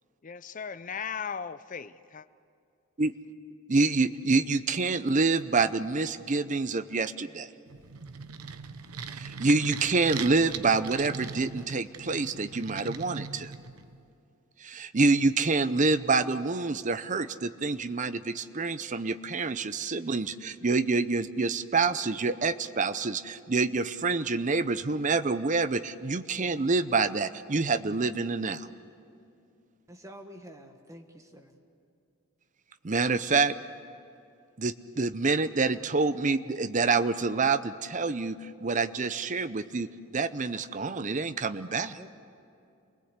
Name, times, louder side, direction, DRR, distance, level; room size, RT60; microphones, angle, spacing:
voice 1, 0.2-2.3, left 6 dB, 35° left, 14 dB, 0.5 m, -37 dB
voice 2, 3.7-7.5 9.2-13.5 14.6-28.7 32.8-33.6 34.6-42.0, right 3 dB, 35° right, 13 dB, 0.6 m, -27 dB
sound 1, 7.7-14.0, right 5 dB, 85° right, 0.9 m, -40 dB
voice 3, 29.9-31.6 41.7-42.1, equal, 15° right, 4 dB, 1.4 m, -48 dB
27.5 x 20.5 x 8.1 m, 2.5 s
head